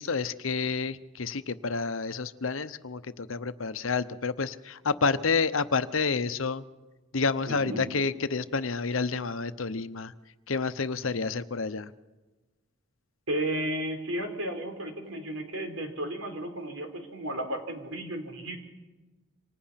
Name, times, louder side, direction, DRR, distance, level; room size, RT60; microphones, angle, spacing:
voice 1, 0.0-6.6 7.1-10.1 10.5-11.9, left 4 dB, 75° left, 13 dB, 0.9 m, -29 dB
voice 2, 7.5-7.9 13.3-18.6, right 1 dB, 85° right, 5 dB, 4.3 m, -33 dB
28.0 x 25.5 x 5.8 m, 1.2 s
head